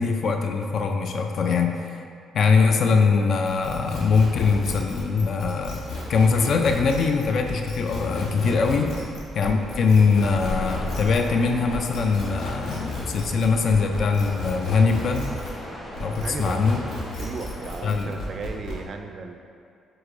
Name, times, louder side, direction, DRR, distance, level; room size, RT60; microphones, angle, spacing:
voice 1, 0.0-1.7 2.3-8.9 9.4-15.3 16.0-16.8 17.8-18.1, left 5 dB, 60° left, 4 dB, 0.3 m, -22 dB
sound 1, 3.4-15.6 15.9-18.8, left 2 dB, 75° left, 0.9 m, -34 dB
sound 2, 10.2-17.8, equal, 25° left, 1.1 m, -37 dB
voice 2, 16.2-16.6 17.2-19.4, right 4 dB, 50° right, 5 dB, 0.3 m, -35 dB
4.7 x 3.6 x 2.5 m, 2.4 s
cardioid pair, 95°, 0 cm